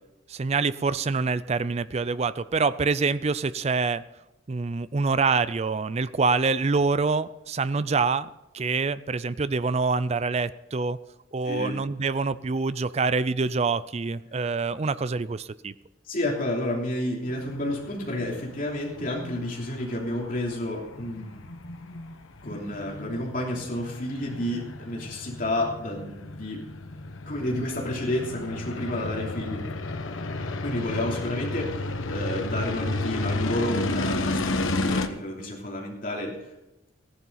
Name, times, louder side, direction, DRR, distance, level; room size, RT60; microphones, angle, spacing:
voice 1, 0.3-4.0 4.5-8.3 8.5-11.0 11.3-15.7, right 4 dB, 30° right, 16 dB, 0.4 m, -26 dB
voice 2, 11.4-11.8 16.0-21.4 22.4-26.6 27.3-29.6 30.6-36.5, left 1 dB, 40° left, -2 dB, 3.1 m, -30 dB
sound 1, 17.3-35.1, left 2 dB, 75° left, 1.1 m, -32 dB
15.5 x 11.0 x 4.0 m, 0.97 s
head